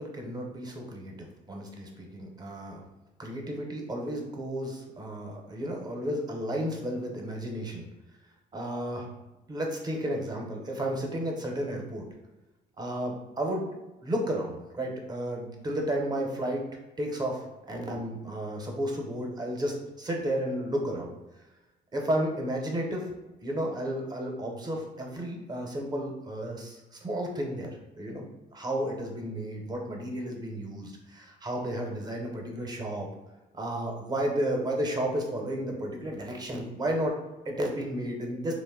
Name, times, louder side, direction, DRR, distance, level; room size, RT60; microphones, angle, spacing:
voice 1, 0.0-2.8 3.2-7.9 8.5-9.1 9.5-12.1 12.8-13.7 14.0-16.7 17.0-21.2 21.9-23.1 23.4-27.7 28.0-28.3 28.5-33.1 33.5-38.5, right 1 dB, 25° right, 1 dB, 0.6 m, -32 dB
2.6 x 2.0 x 3.5 m, 1.1 s
cardioid pair, 110°, 17 cm